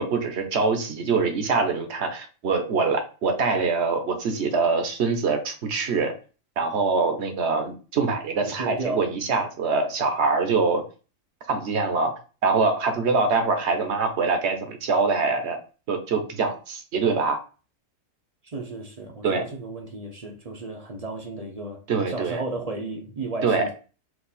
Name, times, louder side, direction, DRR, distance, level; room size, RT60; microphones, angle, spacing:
voice 1, 0.0-6.1 6.6-10.8 11.5-12.1 12.4-15.6 15.9-17.4 19.2-19.4 21.9-22.4 23.4-23.7, right 4 dB, 60° right, 1.1 m, -24 dB
voice 2, 8.4-9.1 18.4-21.8 22.1-23.7, right 2 dB, 40° right, 0.6 m, -33 dB
4.6 x 2.5 x 4.0 m
omnidirectional pair, 1.4 m